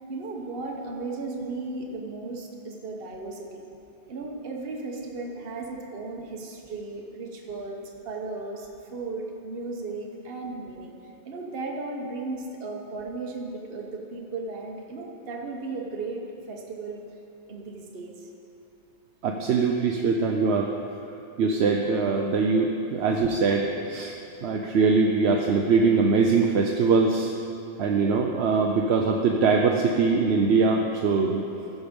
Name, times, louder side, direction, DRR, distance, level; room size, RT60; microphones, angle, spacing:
voice 1, 0.1-3.6 4.1-10.9 11.2-16.2 16.5-17.0 17.5-18.2, right 3 dB, 55° right, 0 dB, 1.2 m, -35 dB
voice 2, 19.2-20.7 21.4-24.2 24.4-27.3 27.8-31.4, right 4 dB, 75° right, 2 dB, 0.9 m, -22 dB
15.0 x 5.3 x 5.1 m, 2.7 s
omnidirectional pair, 1.2 m